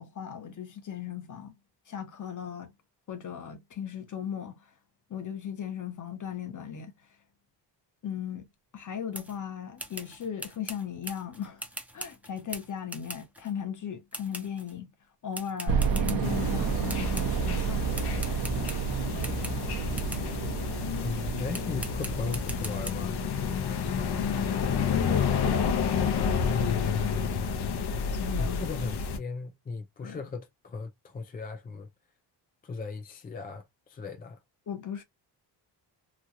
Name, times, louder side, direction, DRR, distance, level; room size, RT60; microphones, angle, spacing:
voice 1, 0.0-1.5 1.9-2.7 3.1-4.6 5.1-6.9 8.0-8.5 8.7-11.7 11.9-14.9 15.2-17.8 19.0-19.5 24.1-26.2 26.5-27.2 28.1-28.6 30.0-30.2 34.7-35.0, left 8 dB, 45° left, 1.0 m, -36 dB
sound 1, 9.1-9.4 9.8-13.5 14.1-14.7 15.3-16.6 16.9-17.6 17.9-20.3 21.0-21.2 21.5-22.9, right 1 dB, 5° right, 0.7 m, -42 dB
sound 2, 15.7-22.4, right 6 dB, 50° right, 0.9 m, -30 dB
sound 3, 16.2-29.2, left 5 dB, 65° left, 0.8 m, -30 dB
voice 2, 21.0-23.2 28.4-31.9 32.6-34.4, left 4 dB, 20° left, 0.4 m, -37 dB
3.1 x 2.3 x 2.6 m
cardioid pair, 125°, 43 cm